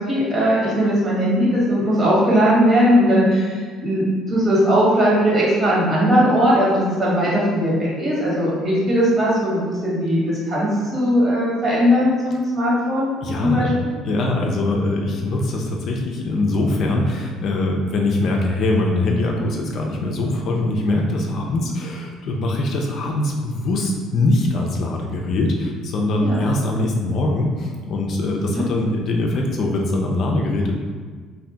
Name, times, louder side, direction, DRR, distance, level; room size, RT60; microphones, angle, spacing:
voice 1, 0.0-13.1 13.4-13.7 26.2-26.4 28.4-28.7, equal, 35° right, -7 dB, 1.4 m, -19 dB
voice 2, 13.2-13.7 14.0-30.7, left 2 dB, 60° left, 0 dB, 0.4 m, -22 dB
2.6 x 2.5 x 3.4 m, 1.5 s
supercardioid pair, 85°, 0 cm